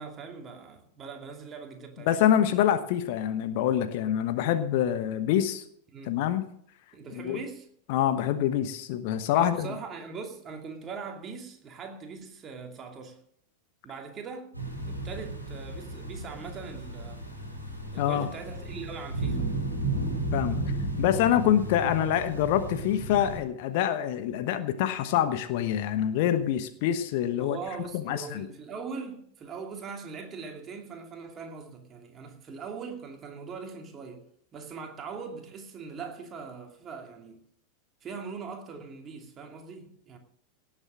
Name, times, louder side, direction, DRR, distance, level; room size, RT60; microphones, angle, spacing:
voice 1, 0.0-2.1 5.9-6.2 6.9-7.7 9.3-13.2 13.8-14.5 14.8-17.2 17.9-19.5 27.4-34.2 34.5-37.4 38.0-40.2, right 5 dB, 25° right, 2.7 m, -41 dB
voice 2, 2.1-5.6 6.1-6.5 7.1-7.4 7.9-9.8 18.0-18.3 20.3-27.6 27.9-28.5, left 10 dB, 50° left, 1.1 m, -26 dB
sound 1, 14.5-23.4, right 2 dB, 90° left, 4.6 m, -34 dB
18.0 x 8.0 x 6.3 m
figure-of-eight pair, 90°, 0 cm